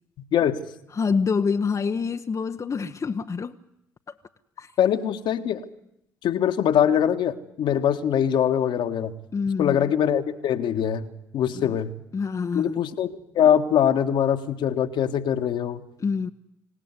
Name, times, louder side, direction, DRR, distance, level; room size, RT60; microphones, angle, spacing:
voice 1, 0.9-3.6 4.6-4.7 9.3-9.9 11.5-11.8 12.1-12.9 16.0-16.3, left 5 dB, 35° left, 1.0 m, -26 dB
voice 2, 4.8-5.6 6.2-9.1 9.6-11.9 12.5-15.8, left 9 dB, 60° left, 1.7 m, -23 dB
25.5 x 17.5 x 9.8 m
hypercardioid pair, 45°, 9 cm